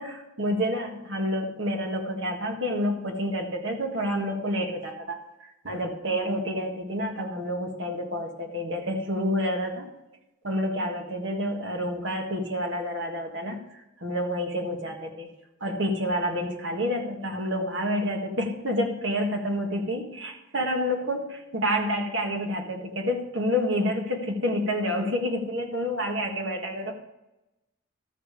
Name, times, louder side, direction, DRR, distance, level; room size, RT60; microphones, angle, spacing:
voice 1, 0.0-5.2 5.6-9.9 10.4-13.6 14.0-15.3 15.6-26.9, equal, 55° right, 2 dB, 1.7 m, -28 dB
13.5 x 5.1 x 6.9 m, 0.94 s
head